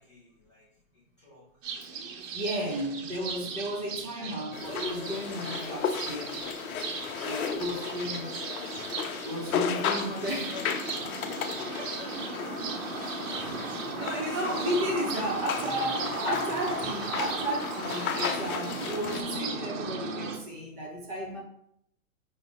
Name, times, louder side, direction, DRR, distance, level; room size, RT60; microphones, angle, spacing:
voice 1, 0.0-2.4 3.8-4.5 5.1-6.1 6.8-8.6 8.9-12.4 14.5-15.0, left 1 dB, 25° left, -6 dB, 0.3 m, -49 dB
sound 1, 1.6-20.4, right 5 dB, 65° right, 0.8 m, -37 dB
voice 2, 2.3-6.5 7.2-8.6 9.2-10.5 12.9-13.1 13.4-21.4, equal, 15° right, -2 dB, 0.6 m, -34 dB
sound 2, 4.5-19.2, left 7 dB, 80° left, 0.6 m, -35 dB
5.0 x 2.1 x 4.0 m, 0.73 s
hypercardioid pair, 155°, 42 cm